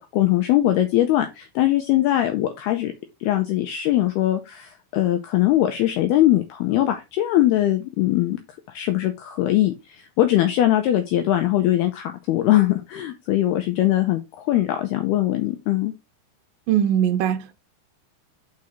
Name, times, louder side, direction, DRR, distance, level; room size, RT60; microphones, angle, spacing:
voice 1, 0.0-2.9 3.2-8.4 8.7-15.9, left 14 dB, 85° left, 2.3 m, -21 dB
voice 2, 16.7-17.5, right 10 dB, 75° right, 2.0 m, -21 dB
6.4 x 4.8 x 4.2 m
omnidirectional pair, 5.5 m